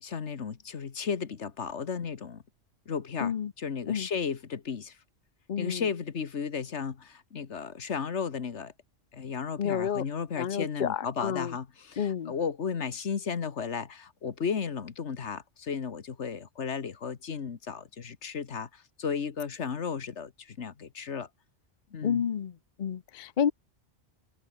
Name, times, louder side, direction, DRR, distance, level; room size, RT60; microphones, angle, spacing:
voice 1, 0.0-2.4 2.9-5.0 5.6-8.7 9.1-21.3 21.9-22.3, left 6 dB, 75° left, 1.7 m, -34 dB
voice 2, 3.2-3.5 3.9-4.1 5.5-5.8 9.6-10.0 10.4-11.5 12.0-12.3 22.0-22.5 22.8-23.5, left 8 dB, 50° left, 0.7 m, -30 dB
omnidirectional pair, 1.2 m